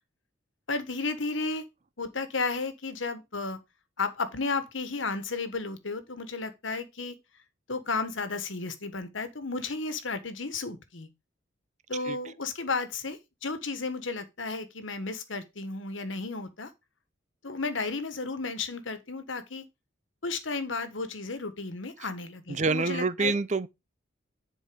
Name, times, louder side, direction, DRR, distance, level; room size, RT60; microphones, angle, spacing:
voice 1, 0.7-1.6 2.0-3.6 4.0-7.2 7.7-11.1 11.9-16.7 17.4-19.6 20.2-23.3, left 3 dB, 75° left, 1.4 m, -33 dB
voice 2, 22.5-23.7, right 4 dB, 35° right, 0.5 m, -27 dB
10.0 x 4.6 x 5.0 m
head